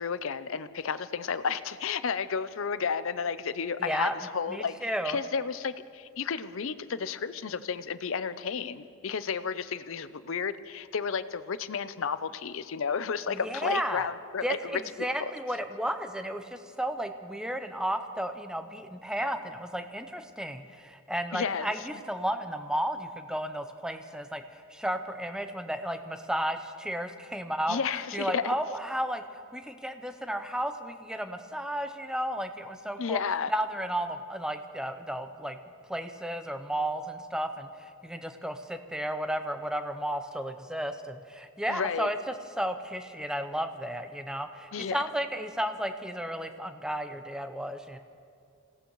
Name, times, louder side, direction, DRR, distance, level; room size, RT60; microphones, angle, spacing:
voice 1, 0.0-14.8 15.2-15.3 21.3-21.7 27.7-28.5 33.0-33.5 41.7-42.1 44.7-45.0, left 6 dB, 65° left, 13 dB, 0.5 m, -32 dB
voice 2, 3.8-4.1 4.5-5.2 13.3-14.1 14.4-27.8 28.1-33.2 33.5-35.6 35.9-42.2 42.6-48.0, equal, 5° right, 8 dB, 0.6 m, -33 dB
27.0 x 17.0 x 3.1 m, 2.4 s
head